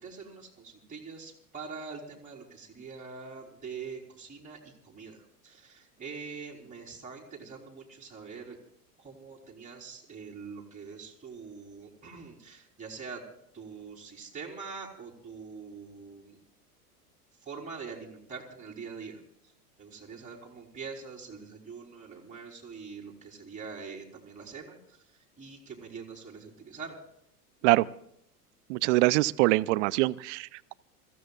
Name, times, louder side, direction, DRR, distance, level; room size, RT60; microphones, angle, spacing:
voice 1, 0.0-4.6 4.9-5.2 5.4-8.6 9.0-13.2 13.5-16.4 17.5-19.2 19.8-24.8 25.4-27.0, right 5 dB, 15° right, -3 dB, 4.0 m, -44 dB
voice 2, 28.7-30.7, right 20 dB, 50° right, 19 dB, 0.7 m, -24 dB
27.0 x 15.5 x 2.4 m, 0.72 s
hypercardioid pair, 90°, 47 cm